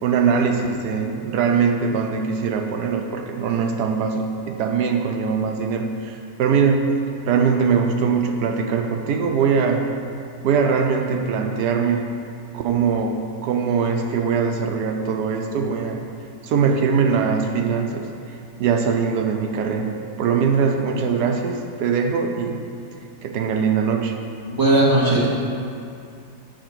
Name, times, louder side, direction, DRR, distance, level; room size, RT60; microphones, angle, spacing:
voice 1, 0.0-6.9 7.3-9.8 10.4-12.2 12.5-16.0 16.4-18.1 18.6-19.9 20.2-22.6 23.2-24.1, right 6 dB, 80° right, 3 dB, 1.2 m, -21 dB
voice 2, 24.5-25.3, right 1 dB, 15° right, -6 dB, 1.4 m, -17 dB
7.7 x 4.3 x 6.0 m, 2.4 s
omnidirectional pair, 1.7 m